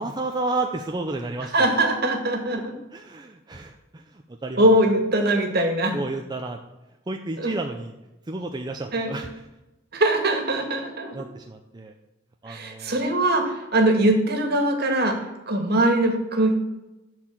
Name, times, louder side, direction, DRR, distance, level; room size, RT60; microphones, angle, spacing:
voice 1, 0.0-1.8 2.9-4.7 5.9-6.6 7.1-7.9 8.3-9.5 11.1-11.9 12.4-13.1, right 2 dB, 20° right, 3 dB, 0.6 m, -31 dB
voice 2, 1.5-2.7 4.6-5.9 7.4-7.5 8.9-9.1 9.9-11.1 12.5-15.2 15.5-16.5, right 1 dB, 55° right, 4 dB, 1.9 m, -21 dB
11.5 x 4.7 x 7.3 m, 1.0 s
head